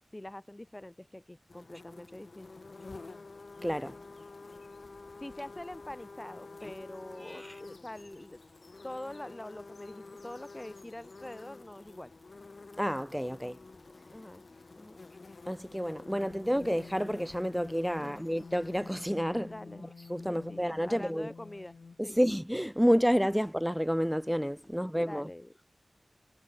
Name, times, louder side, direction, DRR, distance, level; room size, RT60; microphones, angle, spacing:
voice 1, 0.1-2.6 5.2-8.4 8.8-12.1 14.1-14.4 14.8-15.0 18.0-18.2 19.4-19.8 20.3-21.7 22.0-22.2 24.7-25.7, left 1 dB, 20° left, 2.3 m, -45 dB
sound 1, 1.5-18.9, left 3 dB, 60° left, 2.6 m, -50 dB
voice 2, 3.6-4.0 7.2-7.5 12.8-13.6 15.5-19.5 20.1-21.3 22.0-25.3, equal, ahead, 0.3 m, -29 dB
sound 2, 15.3-22.1, left 4 dB, 85° left, 0.8 m, -49 dB
wide cardioid pair, 65°, 0 cm